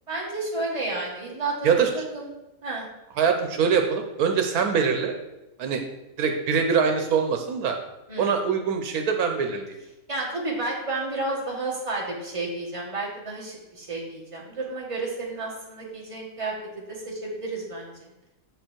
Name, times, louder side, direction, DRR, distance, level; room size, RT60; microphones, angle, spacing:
voice 1, 0.1-1.7 1.9-2.3 2.6-2.9 8.1-8.4 10.1-16.5 16.9-18.1, right 2 dB, 20° right, -3 dB, 1.7 m, -31 dB
voice 2, 3.2-5.2 5.6-5.8 6.2-7.8 8.2-9.7, right 6 dB, 85° right, 5 dB, 1.3 m, -23 dB
7.0 x 5.4 x 4.4 m, 0.95 s
omnidirectional pair, 1.6 m